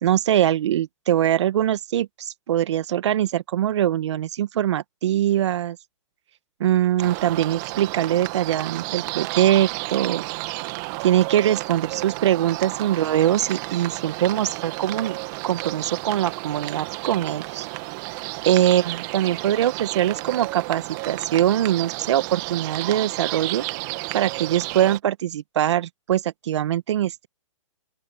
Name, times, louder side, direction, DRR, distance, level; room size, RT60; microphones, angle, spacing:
voice 1, 0.0-5.8 6.6-10.2 11.0-15.2 15.4-17.7 18.4-23.6 24.1-27.3, right 11 dB, 60° right, 1.7 m, -22 dB
sound 1, 7.0-25.0, right 26 dB, 35° right, 2.0 m, -32 dB
open air
hypercardioid pair, 135°, 17 cm